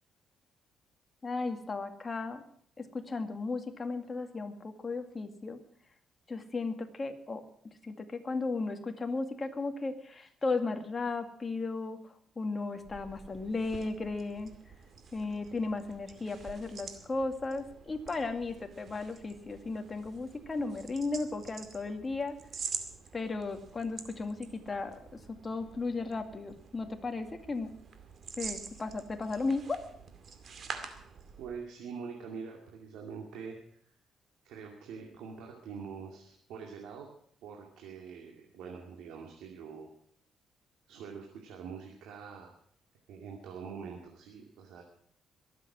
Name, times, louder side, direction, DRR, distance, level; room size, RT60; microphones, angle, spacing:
voice 1, 1.2-2.4 2.8-5.6 6.3-14.5 15.1-22.4 23.1-27.7 28.4-29.8, left 3 dB, 30° left, 5 dB, 2.1 m, -35 dB
sound 1, 12.7-31.7, right 5 dB, 55° right, 2.3 m, -47 dB
voice 2, 31.4-33.6 34.4-37.1 37.4-39.9 40.9-42.6 43.1-44.8, right 6 dB, 90° right, 1 dB, 2.4 m, -44 dB
22.5 x 7.8 x 6.1 m, 0.62 s
cardioid pair, 90°, 0 cm